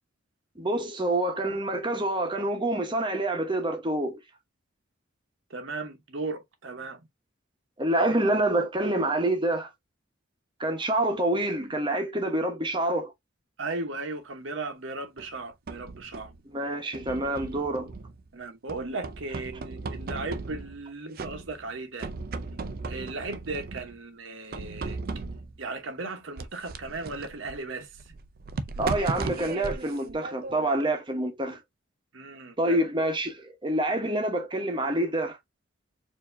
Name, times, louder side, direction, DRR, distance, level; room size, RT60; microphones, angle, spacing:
voice 1, 0.6-4.2 7.8-9.7 10.6-13.1 16.5-17.9 28.8-31.6 32.6-35.4, right 1 dB, 25° right, 1.0 m, -27 dB
voice 2, 5.5-7.0 13.6-16.3 18.3-22.1 22.9-25.0 25.6-27.9 32.1-32.8, right 3 dB, 70° right, 1.0 m, -36 dB
sound 1, 15.2-16.4 16.9-18.3 18.7-20.9 21.2-21.7 22.0-24.0 24.5-25.6 26.4-30.9, right 3 dB, 50° right, 0.5 m, -37 dB
4.5 x 2.8 x 2.6 m
head